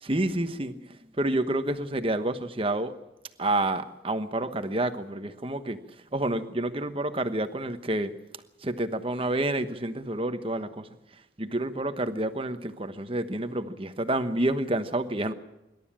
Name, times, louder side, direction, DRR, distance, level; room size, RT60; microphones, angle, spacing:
voice 1, 0.0-0.9 1.2-2.9 3.4-5.8 6.1-8.1 8.6-10.9 11.4-15.3, right 1 dB, 30° right, 10 dB, 1.1 m, -29 dB
25.5 x 12.5 x 8.8 m, 0.96 s
head